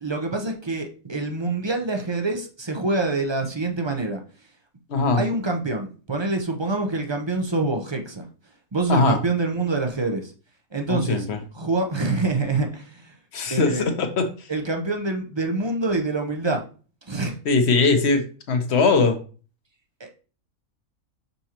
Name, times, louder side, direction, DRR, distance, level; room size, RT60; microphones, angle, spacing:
voice 1, 0.0-4.2 5.1-8.3 8.7-10.3 10.7-11.3 11.5-13.1 13.5-13.9 14.5-16.6 17.1-17.4 20.0-20.1, right 3 dB, 30° right, 3 dB, 0.5 m, -26 dB
voice 2, 4.9-5.2 8.9-9.2 10.9-11.4 13.3-14.5 17.4-19.2, left 4 dB, 50° left, 6 dB, 1.1 m, -21 dB
6.1 x 5.4 x 2.9 m, 0.38 s
omnidirectional pair, 1.5 m